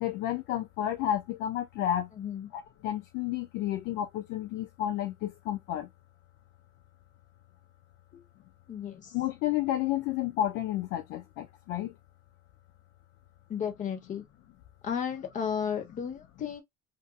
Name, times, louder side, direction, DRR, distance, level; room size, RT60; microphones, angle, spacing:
voice 1, 0.0-2.1 2.5-5.9 9.1-11.9, left 12 dB, 70° left, 0.4 m, -31 dB
voice 2, 2.1-2.5 8.1-8.2 8.7-9.1 13.5-14.2 14.8-16.6, left 7 dB, 40° left, 1.0 m, -34 dB
2.6 x 2.5 x 2.3 m
cardioid pair, 120°, 19 cm